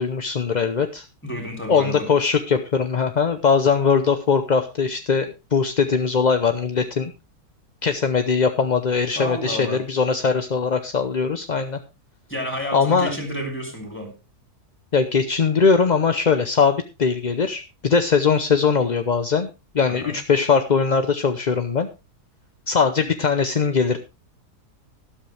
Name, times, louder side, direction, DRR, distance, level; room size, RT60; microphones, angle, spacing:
voice 1, 0.0-1.0 1.7-7.1 7.8-11.8 12.7-13.1 14.9-19.5 19.7-21.9 22.7-24.0, left 5 dB, 40° left, 0.6 m, -20 dB
voice 2, 1.2-2.1 9.2-9.8 12.3-14.2 19.9-20.1, equal, 5° left, 3.5 m, -30 dB
12.5 x 12.0 x 3.3 m
omnidirectional pair, 1.7 m